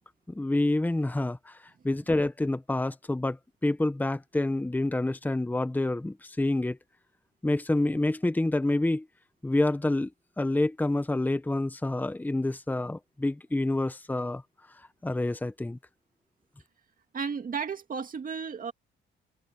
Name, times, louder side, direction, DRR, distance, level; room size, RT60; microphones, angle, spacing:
voice 1, 0.3-1.6 1.8-3.4 3.6-6.8 7.4-9.0 9.4-10.1 10.4-14.4 15.0-15.8, left 2 dB, 10° left, 1.0 m, -27 dB
voice 2, 17.1-18.7, right 6 dB, 45° right, 2.2 m, -33 dB
cardioid pair, 90°, 20 cm